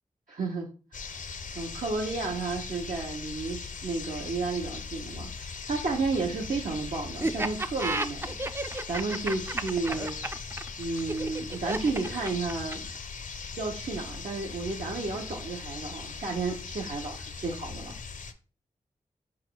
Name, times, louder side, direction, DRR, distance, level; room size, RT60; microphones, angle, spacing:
voice 1, 0.3-0.7 1.5-12.8 13.6-17.9, right 3 dB, 70° right, -2 dB, 0.8 m, -32 dB
sound 1, 0.9-18.3, left 5 dB, 65° left, 0.5 m, -39 dB
Laughter, 7.2-13.0, right 2 dB, 15° right, 0.3 m, -32 dB
4.1 x 2.5 x 4.4 m, 0.36 s
cardioid pair, 45°, 14 cm